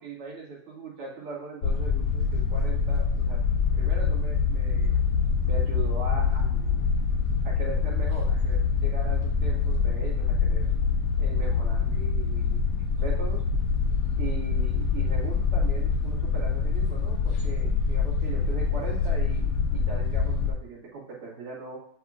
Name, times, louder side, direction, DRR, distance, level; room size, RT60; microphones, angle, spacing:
voice 1, 0.0-3.4 3.7-4.9 5.4-6.9 7.4-10.7 11.2-13.4 14.2-21.8, right 3 dB, 90° right, -5 dB, 3.0 m, -40 dB
sound 1, 1.6-20.5, left 5 dB, 80° left, 1.7 m, -25 dB
10.0 x 4.2 x 2.4 m, 0.62 s
omnidirectional pair, 2.4 m